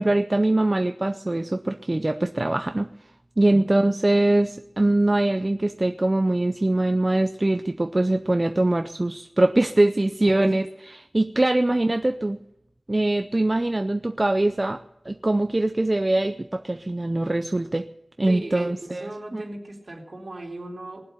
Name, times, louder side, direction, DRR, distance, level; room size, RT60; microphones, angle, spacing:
voice 1, 0.0-2.9 3.4-10.7 11.0-12.4 12.9-17.9 18.2-19.4, right 2 dB, 30° right, 8 dB, 0.6 m, -22 dB
voice 2, 10.2-10.6 18.3-21.1, right 1 dB, 60° right, -1 dB, 3.9 m, -37 dB
20.0 x 7.7 x 9.2 m, 0.82 s
wide cardioid pair, 75°, 0 cm